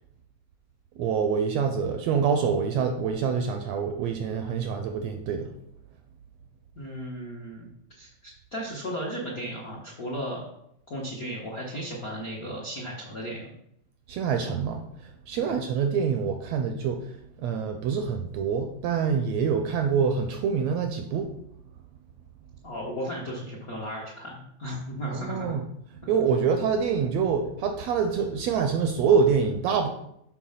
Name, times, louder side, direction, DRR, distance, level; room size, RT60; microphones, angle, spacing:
voice 1, 1.0-5.5 14.1-17.0 17.4-21.3 25.1-25.6 26.1-29.9, right 6 dB, 80° right, 6 dB, 1.6 m, -26 dB
voice 2, 6.7-7.7 8.0-10.4 10.9-13.5 15.4-15.6 22.6-25.6, equal, 60° left, -3 dB, 0.9 m, -35 dB
7.0 x 4.5 x 5.7 m, 0.75 s
omnidirectional pair, 3.5 m